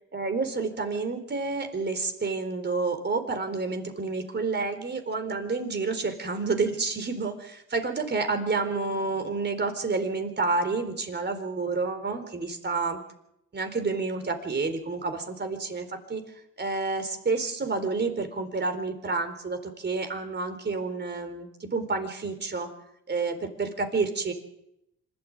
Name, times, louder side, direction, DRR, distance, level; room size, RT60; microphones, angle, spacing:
voice 1, 0.1-13.0 13.5-16.2 16.6-22.7 23.1-24.3, right 4 dB, 35° right, 7 dB, 4.1 m, -29 dB
26.0 x 13.0 x 8.9 m, 0.82 s
cardioid pair, 90°, 30 cm